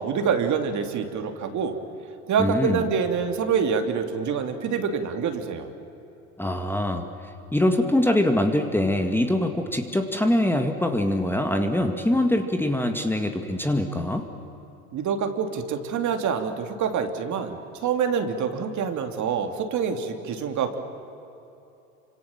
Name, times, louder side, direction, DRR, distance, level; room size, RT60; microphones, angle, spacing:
voice 1, 0.0-1.8 2.3-5.7 14.9-20.8, right 6 dB, 40° right, 6 dB, 3.0 m, -26 dB
voice 2, 2.4-2.8 6.4-7.1 7.5-14.2, left 1 dB, 5° left, 4 dB, 2.0 m, -23 dB
27.5 x 26.0 x 7.4 m, 2.9 s
hypercardioid pair, 90°, 42 cm